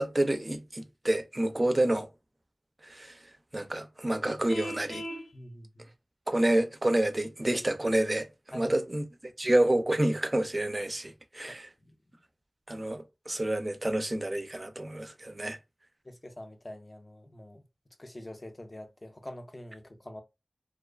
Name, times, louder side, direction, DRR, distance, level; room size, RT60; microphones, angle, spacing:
voice 1, 0.0-2.1 2.8-3.2 3.5-5.0 6.3-9.0 9.4-11.7 12.7-15.6, right 1 dB, 35° right, 0.4 m, -28 dB
Vehicle horn car horn honking, 4.5-5.3, equal, 85° left, 0.8 m, -38 dB
voice 2, 5.3-5.9 8.5-8.7 11.4-11.6 11.9-12.2 16.0-17.6 18.0-20.2, left 1 dB, 35° left, 0.4 m, -45 dB
2.4 x 2.3 x 2.2 m
wide cardioid pair, 60°, 0 cm